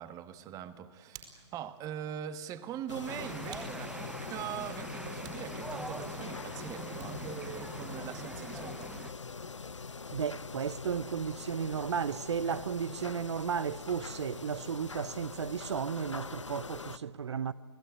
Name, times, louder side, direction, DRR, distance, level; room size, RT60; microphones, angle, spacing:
voice 1, 0.0-8.9, right 10 dB, 25° right, 1.2 m, -42 dB
Hands, 0.5-7.4, right 8 dB, 50° right, 4.5 m, -56 dB
sound 1, 2.9-17.0, left 4 dB, 85° left, 0.8 m, -43 dB
sound 2, 3.1-9.1, right 3 dB, 5° right, 0.6 m, -44 dB
voice 2, 10.1-17.5, right 7 dB, 70° right, 0.6 m, -34 dB
28.5 x 18.0 x 9.9 m
figure-of-eight pair, 125°, 15 cm